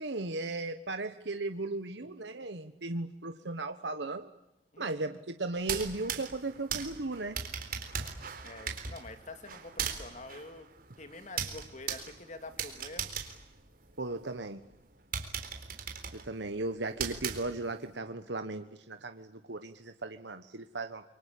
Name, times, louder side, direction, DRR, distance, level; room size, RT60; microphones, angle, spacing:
voice 1, 0.0-4.3 4.8-7.4 14.0-14.6 16.1-21.0, right 2 dB, 75° right, 8 dB, 1.3 m, -36 dB
voice 2, 4.7-5.2 8.4-10.7 11.0-13.1, left 2 dB, 40° left, 8 dB, 2.7 m, -47 dB
sound 1, 5.6-14.3 14.7-14.8 15.1-17.9, right 7 dB, 55° right, 4.0 m, -39 dB
28.5 x 24.5 x 8.5 m, 0.93 s
head